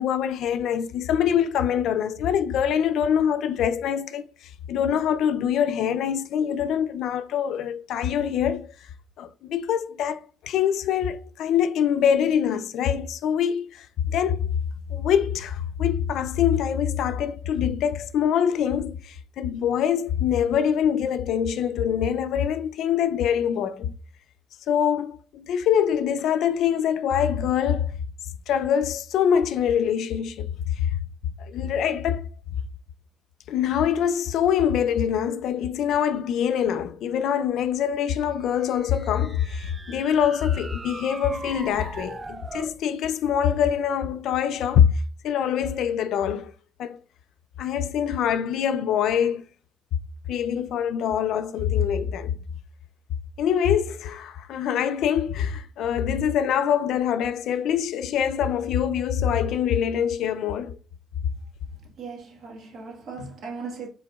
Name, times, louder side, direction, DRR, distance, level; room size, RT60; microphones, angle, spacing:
voice 1, 0.0-4.3 4.7-8.7 9.2-14.5 14.9-23.9 24.7-27.9 28.5-30.9 31.4-32.3 33.5-44.9 45.2-46.5 46.8-47.0 47.6-49.4 50.3-52.4 53.4-60.8, left 8 dB, 80° left, 0.4 m, -24 dB
sound 1, 38.4-42.8, right 3 dB, 25° right, 0.3 m, -40 dB
voice 2, 62.0-63.9, right 4 dB, 70° right, 1.3 m, -37 dB
4.9 x 3.4 x 2.3 m
cardioid pair, 90°, 0 cm